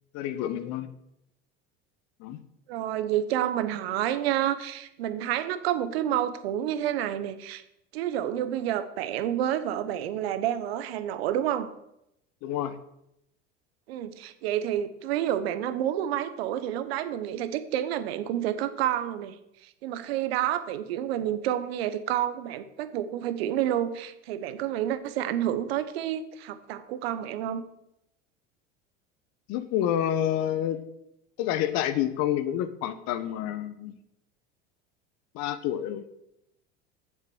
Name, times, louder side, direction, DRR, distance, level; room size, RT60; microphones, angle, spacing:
voice 1, 0.1-0.9 2.2-2.4 12.4-12.7 29.5-30.8 31.4-33.9 35.3-36.0, left 11 dB, 60° left, 12 dB, 1.1 m, -28 dB
voice 2, 2.7-7.6 7.9-11.7 13.9-19.4 19.6-27.6, right 11 dB, 75° right, 12 dB, 1.1 m, -29 dB
9.8 x 7.4 x 6.3 m, 0.83 s
hypercardioid pair, 85°, 30 cm